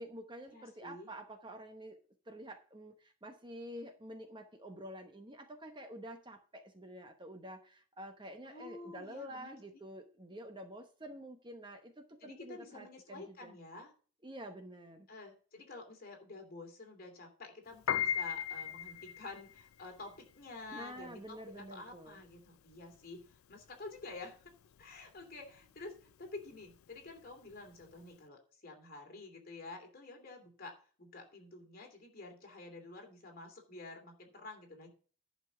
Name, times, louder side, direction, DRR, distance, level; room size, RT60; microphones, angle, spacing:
voice 1, 0.0-2.0 2.3-13.5 14.2-15.1 20.7-22.2, right 1 dB, 20° right, 6 dB, 0.9 m, -48 dB
voice 2, 0.5-1.1 8.4-9.6 12.2-13.9 15.1-24.5 24.8-34.9, left 3 dB, 45° left, 2 dB, 2.7 m, -49 dB
Piano, 17.7-28.1, left 9 dB, 75° left, 0.4 m, -39 dB
11.0 x 5.3 x 6.0 m, 0.40 s
head